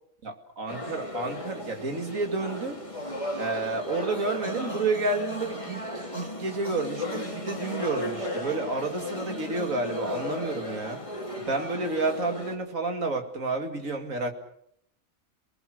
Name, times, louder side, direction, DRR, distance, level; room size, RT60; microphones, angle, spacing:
voice 1, 0.2-2.8 3.3-5.9 6.1-11.0 11.4-14.3, right 3 dB, 65° right, 5 dB, 2.8 m, -30 dB
sound 1, 0.7-12.6, left 1 dB, 20° left, 3.5 m, -35 dB
28.5 x 19.5 x 6.3 m, 0.72 s
omnidirectional pair, 1.5 m